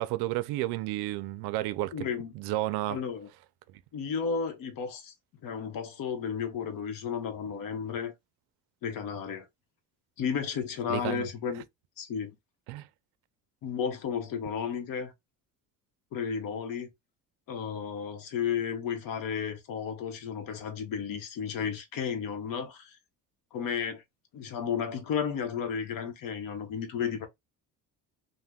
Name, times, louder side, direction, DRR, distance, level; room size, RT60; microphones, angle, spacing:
voice 1, 0.0-1.9 2.3-3.0 3.7-3.8 10.9-11.3 12.7-12.9, right 16 dB, 85° right, 0.5 m, -31 dB
voice 2, 1.9-2.3 2.9-3.3 3.9-5.1 5.4-8.1 8.8-9.5 10.2-11.6 12.0-12.4 13.6-15.1 16.1-16.9 17.5-23.0 23.5-24.0 24.3-27.3, left 7 dB, 60° left, 1.0 m, -33 dB
2.7 x 2.1 x 3.4 m
cardioid pair, 125°, 38 cm